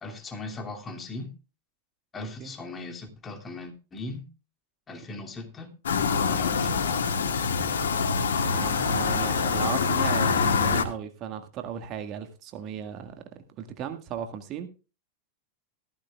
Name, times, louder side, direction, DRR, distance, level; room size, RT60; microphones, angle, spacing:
voice 1, 0.0-1.3 2.1-4.3 4.9-5.7 6.1-6.8, left 3 dB, 20° left, 3 dB, 2.7 m, -39 dB
voice 2, 2.1-2.5 5.1-5.2 8.1-13.2 13.6-14.7, right 8 dB, 35° right, 7 dB, 1.8 m, -36 dB
sound 1, 5.9-10.8, left 5 dB, 65° left, 1.9 m, -25 dB
15.0 x 14.5 x 2.4 m, 0.33 s
figure-of-eight pair, 90°, 0 cm